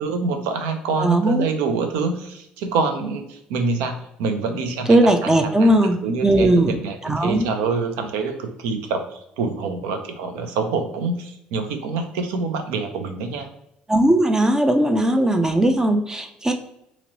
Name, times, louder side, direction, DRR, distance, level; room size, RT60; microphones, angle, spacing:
voice 1, 0.0-5.7 6.0-13.5, right 4 dB, 80° right, 6 dB, 0.5 m, -26 dB
voice 2, 1.0-1.5 4.9-6.8 7.0-7.5 13.9-16.5, right 1 dB, 15° right, 6 dB, 0.4 m, -18 dB
2.9 x 2.9 x 2.7 m, 0.78 s
hypercardioid pair, 65°, 4 cm